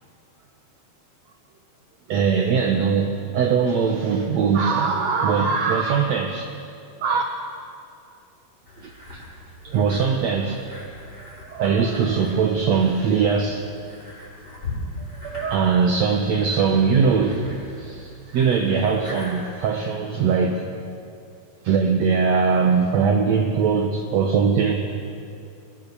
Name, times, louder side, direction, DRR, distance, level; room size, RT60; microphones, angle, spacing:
voice 1, 2.1-6.5 7.0-7.2 8.8-9.2 9.6-10.6 11.2-13.6 15.1-20.7 21.6-24.7, right 5 dB, 65° right, 2 dB, 1.8 m, -21 dB
sound 1, 8.7-19.9, left 1 dB, 25° left, 7.2 m, -39 dB
22.5 x 20.5 x 6.9 m, 2.5 s
omnidirectional pair, 4.4 m